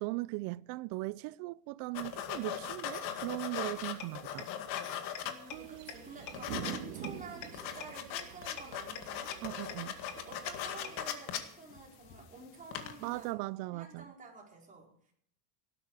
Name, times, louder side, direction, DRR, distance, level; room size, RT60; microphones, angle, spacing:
voice 1, 0.0-4.5 5.5-5.9 6.6-6.8 9.4-10.0 13.0-14.1, right 22 dB, 55° right, 0.5 m, -39 dB
sound 1, 1.9-5.7 6.1-6.8 7.1-7.2 7.4-12.3 12.6-13.1, left 10 dB, 55° left, 2.1 m, -39 dB
sound 2, 4.0-4.1 4.4-4.5 4.8-4.9 5.1-5.2 5.5-5.6 5.9-6.0 6.3-6.4 6.6-6.7 7.0-7.1 7.4-7.5 7.8-7.9 8.2-8.3 8.6-8.7 8.9-9.0 9.3-9.4 9.7-9.8 10.1-10.2 10.5-10.6 10.8-10.9, left 8 dB, 40° left, 2.4 m, -41 dB
voice 2, 5.2-9.4 10.1-13.4 13.7-15.1, right 4 dB, 15° right, 4.9 m, -50 dB
sound 3, 5.5-10.9, right 8 dB, 80° right, 2.0 m, -46 dB
18.0 x 12.0 x 4.9 m
cardioid pair, 145°, 46 cm